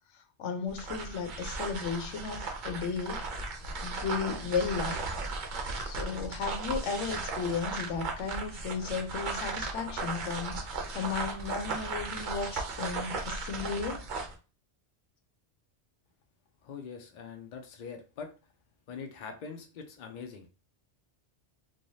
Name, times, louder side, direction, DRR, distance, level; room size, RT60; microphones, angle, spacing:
voice 1, 0.1-3.2 3.8-5.0 5.8-10.6 10.9-14.0, left 5 dB, 80° left, 6 dB, 0.9 m, -34 dB
sound 1, 0.7-14.4, right 3 dB, 55° right, 0.6 m, -36 dB
voice 2, 16.6-18.3 18.9-20.5, left 5 dB, 55° left, 5 dB, 0.6 m, -43 dB
3.2 x 2.3 x 2.6 m, 0.33 s
omnidirectional pair, 1.2 m